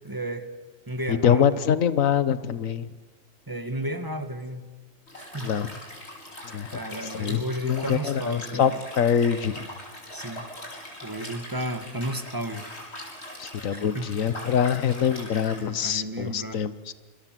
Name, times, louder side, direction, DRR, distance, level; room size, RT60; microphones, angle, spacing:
voice 1, 0.0-0.5 0.9-1.6 3.5-4.7 5.2-5.5 6.7-8.8 10.1-10.4 11.0-12.6 13.7-14.1 15.8-16.6, equal, 15° right, 9 dB, 1.7 m, -33 dB
voice 2, 1.1-2.9 5.4-5.7 6.5-6.7 7.2-8.7 9.0-9.7 13.4-16.9, left 8 dB, 85° left, 14 dB, 1.4 m, -24 dB
Liquid, 5.1-15.6, left 1 dB, 55° left, 5.7 m, -41 dB
27.0 x 25.5 x 7.6 m, 1.2 s
omnidirectional pair, 1.4 m